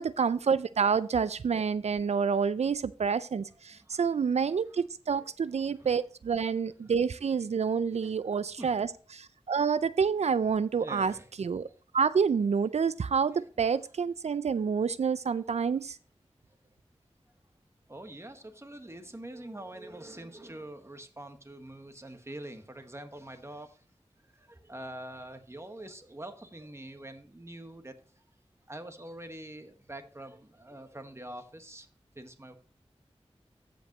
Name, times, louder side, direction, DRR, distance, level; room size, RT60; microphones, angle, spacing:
voice 1, 0.0-8.9 9.1-11.1 11.4-11.7 11.9-16.0, right 6 dB, 80° right, 0.4 m, -28 dB
voice 2, 3.7-4.0 5.1-5.2 5.7-5.9 7.9-8.7 10.8-11.3 12.8-13.1 13.3-13.5 15.3-15.8 17.9-23.8 24.2-28.2 28.7-31.9 32.1-32.5, right 1 dB, 25° right, 1.4 m, -45 dB
15.0 x 5.2 x 2.9 m
wide cardioid pair, 55°, 11 cm